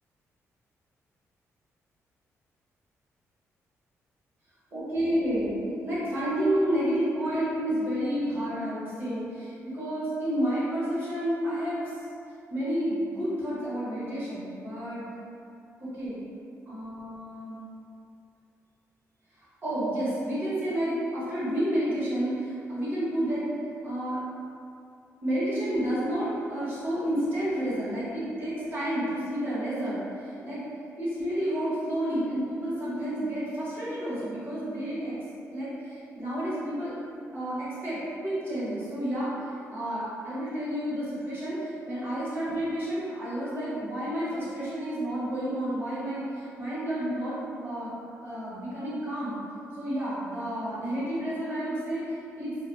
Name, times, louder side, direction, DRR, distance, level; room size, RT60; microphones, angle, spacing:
voice 1, 4.7-11.8 12.5-15.1 15.8-16.2 16.7-17.6 19.4-23.5 23.8-24.2 25.2-30.7 31.0-35.2 35.5-36.9 37.3-39.3 39.7-47.9 48.2-49.4 49.8-52.6, equal, 40° right, -10 dB, 1.2 m, -30 dB
2.4 x 2.2 x 4.0 m, 2.5 s
cardioid pair, 95°, 6 cm